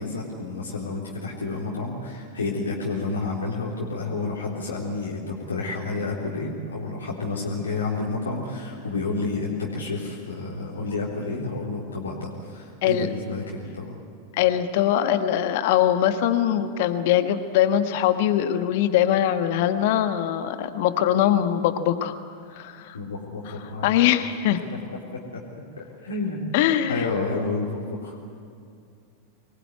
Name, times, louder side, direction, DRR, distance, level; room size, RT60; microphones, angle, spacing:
voice 1, 0.0-13.9 22.9-24.1 24.9-25.4 25.7-26.4 26.9-28.2, left 3 dB, 70° left, -4 dB, 3.7 m, -30 dB
voice 2, 14.3-22.1 22.5-23.0 23.5-23.6 23.8-24.6 26.5-27.1, left 11 dB, 50° left, 10 dB, 1.3 m, -22 dB
24.5 x 21.0 x 9.6 m, 2.4 s
figure-of-eight pair, 90°, 0 cm